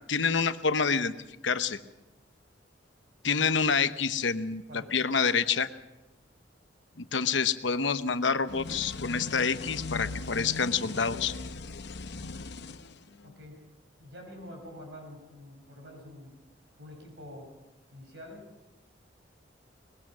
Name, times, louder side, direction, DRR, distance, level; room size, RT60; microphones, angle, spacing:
voice 1, 0.1-1.1 1.4-1.8 3.2-4.6 4.9-5.7 7.0-11.3, left 5 dB, 85° left, 11 dB, 1.0 m, -27 dB
sound 1, 8.5-13.4, left 3 dB, 65° left, 0.8 m, -39 dB
voice 2, 13.2-13.6 14.0-16.3 16.8-17.5 17.9-18.5, left 1 dB, 70° right, 2 dB, 6.7 m, -47 dB
22.0 x 19.5 x 6.1 m, 0.99 s
head